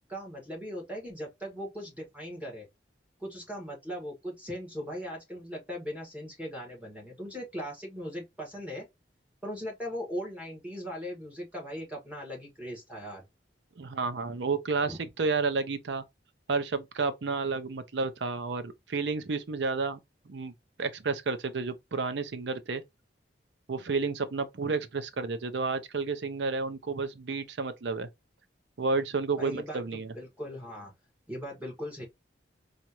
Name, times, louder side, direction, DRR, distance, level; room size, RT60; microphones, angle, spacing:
voice 1, 0.1-2.7 3.2-8.9 9.4-13.2 14.9-15.0 29.4-30.9 31.3-32.1, equal, 10° right, 1.6 m, -39 dB
voice 2, 13.8-16.0 16.5-20.0 20.3-20.5 20.8-22.8 23.7-28.1 28.8-30.1, right 4 dB, 70° right, 0.6 m, -31 dB
4.2 x 2.5 x 2.9 m
head